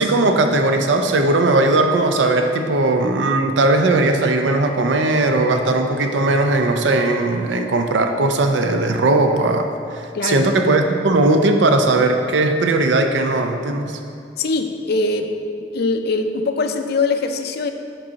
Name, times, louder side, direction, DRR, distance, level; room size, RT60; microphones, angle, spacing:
voice 1, 0.0-14.0, right 2 dB, 85° right, 5 dB, 0.5 m, -18 dB
voice 2, 10.1-10.5 14.4-15.3 15.6-17.7, left 3 dB, 60° left, 7 dB, 0.4 m, -22 dB
5.3 x 4.1 x 5.7 m, 2.5 s
head